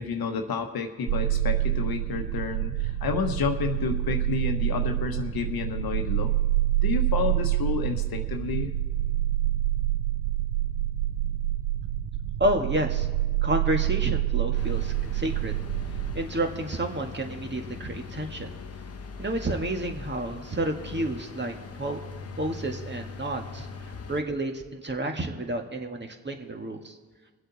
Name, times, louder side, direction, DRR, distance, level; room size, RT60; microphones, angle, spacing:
voice 1, 0.0-6.3 6.8-8.7, left 6 dB, 75° left, 5 dB, 1.2 m, -30 dB
sound 1, 1.1-16.2, right 14 dB, 70° right, 0.8 m, -27 dB
voice 2, 12.4-13.1 13.4-15.6 16.1-18.5 19.2-22.0 22.4-27.0, right 1 dB, 30° right, 3 dB, 1.8 m, -30 dB
sound 2, 14.5-24.2, left 5 dB, 40° left, 1.1 m, -41 dB
23.5 x 7.9 x 4.1 m, 1.5 s
cardioid pair, 60°, 37 cm